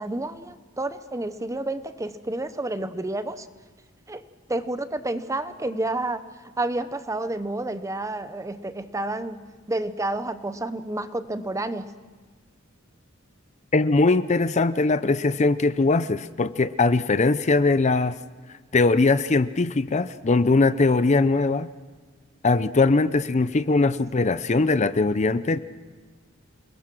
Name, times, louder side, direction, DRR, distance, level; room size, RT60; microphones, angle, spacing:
voice 1, 0.0-3.5 4.1-6.2 6.6-11.9, right 2 dB, 15° right, 11 dB, 0.8 m, -30 dB
voice 2, 13.7-18.2 18.7-21.7 22.4-25.6, left 3 dB, 35° left, 14 dB, 0.6 m, -21 dB
28.5 x 21.5 x 6.1 m, 1.4 s
head